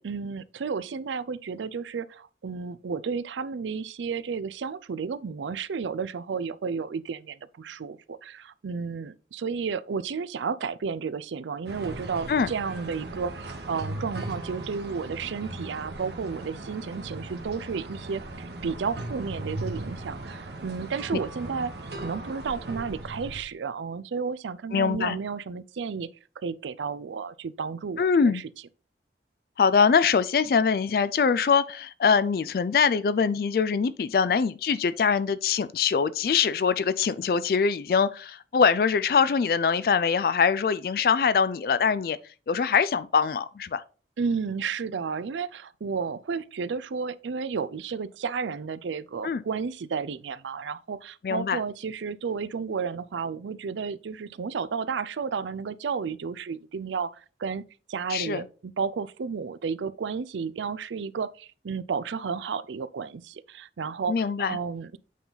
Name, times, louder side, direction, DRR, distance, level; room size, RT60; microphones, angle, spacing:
voice 1, 0.0-21.7 22.0-26.1 26.4-28.4 44.2-65.0, right 5 dB, 90° right, 0.4 m, -32 dB
sound 1, 11.6-23.4, right 1 dB, 70° right, 1.2 m, -38 dB
voice 2, 24.7-25.2 28.0-28.4 29.6-42.2 42.5-43.8 49.2-49.4 51.2-51.6 58.1-58.4 64.1-64.6, left 6 dB, 55° left, 0.3 m, -23 dB
8.3 x 3.9 x 3.9 m
head